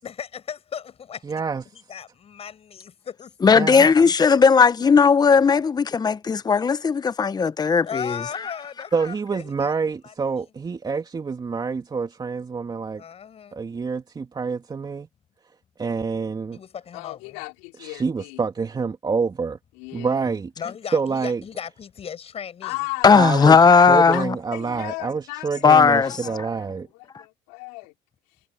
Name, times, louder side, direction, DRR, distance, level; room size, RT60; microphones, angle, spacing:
voice 1, 0.0-1.2 1.7-3.3 7.8-9.7 10.0-10.1 13.0-13.6 16.5-17.4 20.6-22.9 23.1-23.4, left 8 dB, 45° left, 6.3 m, -37 dB
voice 2, 1.2-1.9 3.5-3.9 8.9-13.0 13.5-15.1 15.8-16.6 17.8-19.6 19.9-20.5 20.9-21.4 23.1-23.6 23.9-26.9, right 5 dB, 30° right, 3.1 m, -27 dB
voice 3, 3.4-8.1 23.0-24.3 25.6-26.2, left 5 dB, 30° left, 1.1 m, -16 dB
voice 4, 16.9-18.4 19.7-20.3 22.6-23.5 24.1-24.2 24.5-27.9, left 27 dB, 85° left, 5.0 m, -36 dB
supercardioid pair, 75°, 14 cm